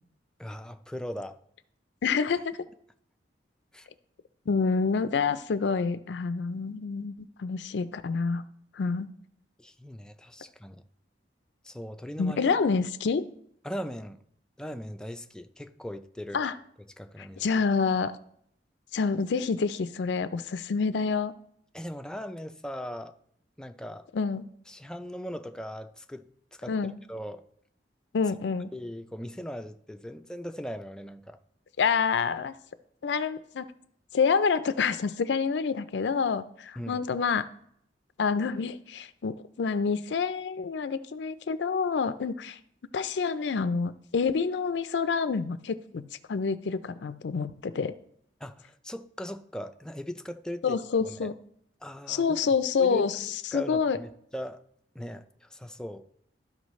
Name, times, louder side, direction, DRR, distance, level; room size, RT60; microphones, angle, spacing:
voice 1, 0.4-1.4 3.7-3.9 9.6-10.8 11.6-12.4 13.6-14.2 14.6-16.4 17.0-17.4 21.7-23.1 23.6-24.1 24.7-26.3 26.6-26.8 27.1-27.4 28.7-31.4 36.8-37.0 48.4-51.3 51.8-52.2 52.8-53.2 53.5-54.6 54.9-56.0, equal, 5° left, 0.4 m, -39 dB
voice 2, 2.0-2.5 4.5-8.4 8.7-9.1 12.2-13.3 16.3-16.6 17.4-18.1 18.9-21.3 24.1-24.4 26.7-26.9 28.1-28.7 31.8-32.6 33.0-33.7 34.1-37.5 38.2-42.6 42.9-47.9 50.6-51.3 52.1-54.0, left 5 dB, 70° left, 0.4 m, -27 dB
13.0 x 5.2 x 3.1 m
head